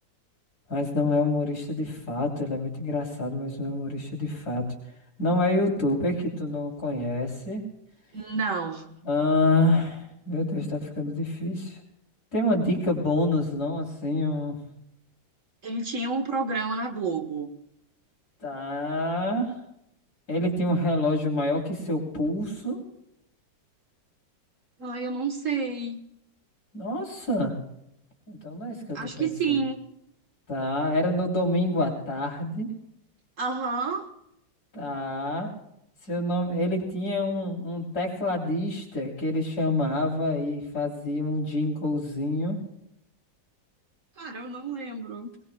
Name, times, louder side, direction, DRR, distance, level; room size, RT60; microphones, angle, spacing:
voice 1, 0.7-4.6 5.2-7.6 9.1-11.8 12.3-14.6 18.4-19.5 20.3-22.8 26.7-27.5 28.3-29.6 30.5-32.7 34.7-35.5 36.1-42.6, left 1 dB, 50° left, 0 dB, 3.9 m, -27 dB
voice 2, 8.1-9.0 15.6-17.5 24.8-26.0 28.9-29.8 33.4-34.1 44.2-45.3, right 4 dB, 45° right, 6 dB, 1.5 m, -29 dB
21.5 x 21.0 x 2.3 m, 0.79 s
omnidirectional pair, 2.1 m